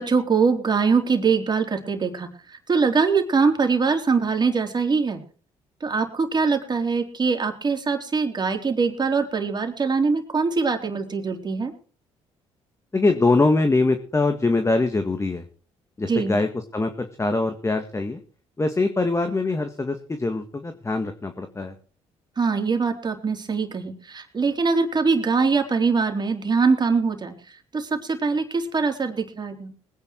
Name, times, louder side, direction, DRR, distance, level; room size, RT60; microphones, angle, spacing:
voice 1, 0.0-5.2 5.8-11.7 16.1-16.4 22.4-27.3 27.7-29.7, right 4 dB, 35° right, 5 dB, 3.7 m, -23 dB
voice 2, 12.9-15.4 16.0-18.2 18.6-21.7, left 3 dB, 25° left, 7 dB, 1.9 m, -23 dB
20.5 x 9.7 x 4.7 m, 0.41 s
supercardioid pair, 65°, 13 cm